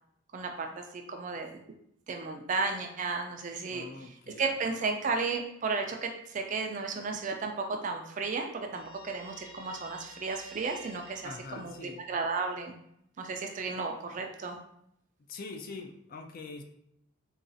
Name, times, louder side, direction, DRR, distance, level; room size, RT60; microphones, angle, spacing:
voice 1, 0.3-1.5 2.1-3.8 4.4-12.7 13.2-14.6, right 4 dB, 35° right, 4 dB, 0.3 m, -34 dB
voice 2, 3.7-4.5 11.2-12.0 15.2-16.6, left 3 dB, 40° left, 4 dB, 0.3 m, -43 dB
Guitar, 8.7-12.3, right 1 dB, 20° left, 0.7 m, -51 dB
4.0 x 2.3 x 2.5 m, 0.75 s
head